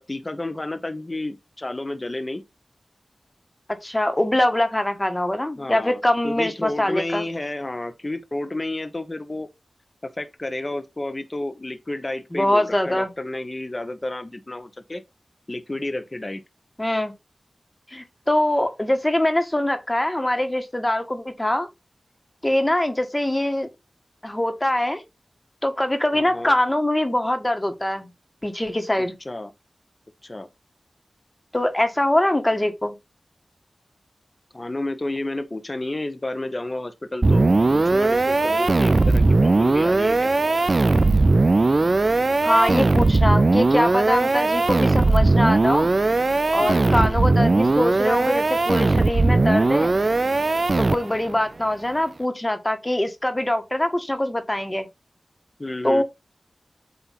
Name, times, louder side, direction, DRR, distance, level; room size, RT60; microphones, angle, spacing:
voice 1, 0.0-2.4 5.6-9.5 10.0-15.0 15.5-16.4 26.1-26.5 29.0-29.5 30.2-30.5 34.5-40.3 46.6-47.2 55.6-56.0, left 2 dB, 35° left, 1.0 m, -31 dB
voice 2, 3.8-7.2 12.3-13.1 16.8-17.1 17.9-21.7 22.4-23.7 24.2-25.0 25.6-28.1 28.4-29.1 31.5-33.0 42.4-45.9 46.5-49.9 50.8-54.9 55.8-56.0, left 1 dB, 20° left, 1.5 m, -23 dB
sound 1, 37.2-51.3, right 3 dB, 55° right, 0.4 m, -19 dB
8.3 x 2.9 x 4.1 m
cardioid pair, 40°, 0 cm